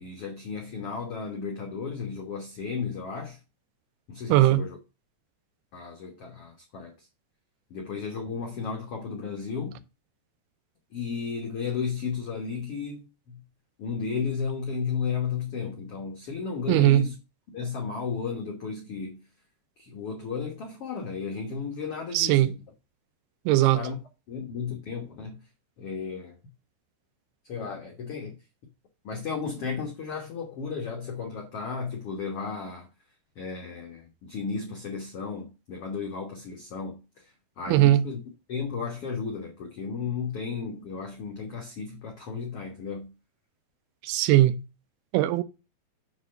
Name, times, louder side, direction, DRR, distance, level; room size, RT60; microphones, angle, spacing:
voice 1, 0.0-3.4 4.1-4.8 5.7-7.1 7.7-9.8 10.9-13.4 13.8-17.1 17.5-19.2 19.8-22.6 23.7-24.0 24.3-25.4 25.8-26.4 27.4-28.3 29.0-32.9 33.3-38.2 38.5-43.1, left 5 dB, 65° left, 1.4 m, -34 dB
voice 2, 4.3-4.6 16.7-17.0 22.1-22.5 23.5-23.8 37.7-38.0 44.0-44.6 45.1-45.4, right 15 dB, 80° right, 2.6 m, -19 dB
7.4 x 4.2 x 6.4 m
omnidirectional pair, 4.6 m